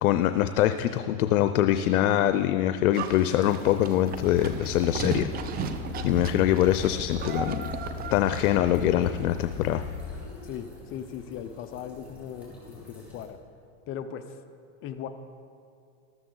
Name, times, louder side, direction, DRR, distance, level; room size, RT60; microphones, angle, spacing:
voice 1, 0.0-5.3 6.0-7.7 8.1-9.8, left 12 dB, 90° left, 10 dB, 0.6 m, -24 dB
Livestock farm animals working animals, 2.9-8.7, right 6 dB, 20° right, 0.5 m, -36 dB
sound 1, 3.4-13.2, left 2 dB, 5° right, 3.4 m, -50 dB
sound 2, 4.1-10.3, left 6 dB, 50° left, 3.8 m, -38 dB
voice 2, 10.4-13.4 13.9-14.4 14.8-15.1, left 9 dB, 30° left, 9 dB, 0.5 m, -38 dB
13.5 x 13.5 x 3.9 m, 2.3 s
supercardioid pair, 135°, 42 cm